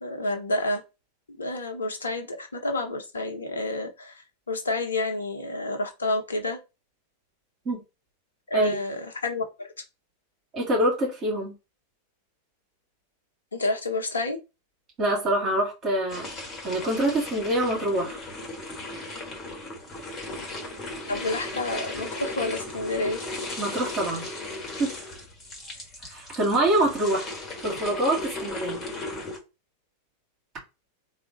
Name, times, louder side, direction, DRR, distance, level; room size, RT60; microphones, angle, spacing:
voice 1, 0.0-0.8 1.3-6.6 8.5-9.7 13.5-14.4 21.1-23.2, left 2 dB, 75° left, 0.9 m, -29 dB
voice 2, 10.5-11.5 15.0-16.3 16.6-18.2 23.6-24.2 24.8-25.0 26.1-27.3 27.6-28.8, right 1 dB, 25° right, 2.2 m, -25 dB
sound 1, 16.1-29.4, left 2 dB, 25° left, 1.5 m, -36 dB
3.6 x 2.4 x 3.9 m
figure-of-eight pair, 90°, 0 cm